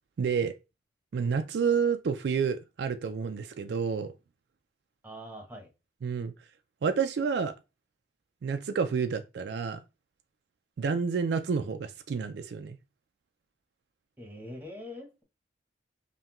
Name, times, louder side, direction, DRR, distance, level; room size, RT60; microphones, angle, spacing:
voice 1, 0.2-0.5 1.1-4.1 6.0-6.3 6.8-7.5 8.4-9.8 10.8-12.8, right 6 dB, 65° right, 0.3 m, -29 dB
voice 2, 5.0-5.7 14.2-15.2, equal, 10° right, 0.9 m, -43 dB
5.5 x 2.2 x 2.9 m
head